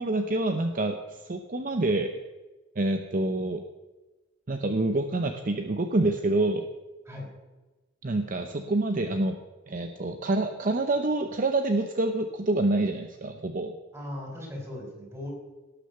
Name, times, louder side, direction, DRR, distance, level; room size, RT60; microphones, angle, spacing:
voice 1, 0.0-2.1 2.8-3.6 4.5-6.7 8.0-9.4 9.7-13.8, right 2 dB, 45° right, 6 dB, 0.7 m, -27 dB
voice 2, 13.9-15.3, left 1 dB, 15° right, 0 dB, 4.3 m, -38 dB
17.5 x 6.5 x 6.6 m, 1.2 s
head